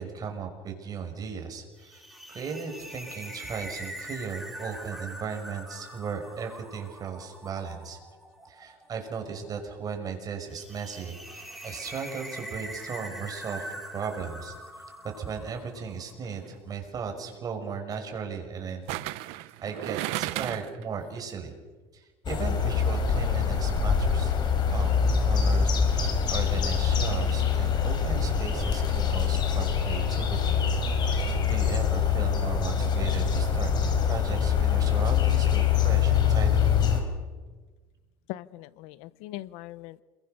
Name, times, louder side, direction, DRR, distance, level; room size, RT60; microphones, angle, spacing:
voice 1, 0.0-2.0 2.3-8.0 8.5-14.5 15.2-18.9 19.1-21.5 21.9-24.4 24.7-30.6 31.1-36.7, right 6 dB, 35° right, 4 dB, 5.8 m, -36 dB
sound 1, 1.8-16.1, right 1 dB, ahead, 5.4 m, -43 dB
sound 2, 16.2-16.5 18.9-20.8 21.2-21.3, right 18 dB, 75° right, 0.9 m, -33 dB
sound 3, 22.3-37.0, left 7 dB, 45° left, 4.8 m, -24 dB
voice 2, 38.3-40.0, left 16 dB, 80° left, 18 dB, 0.9 m, -40 dB
29.5 x 22.0 x 6.8 m, 1.3 s
cardioid pair, 120°, 10 cm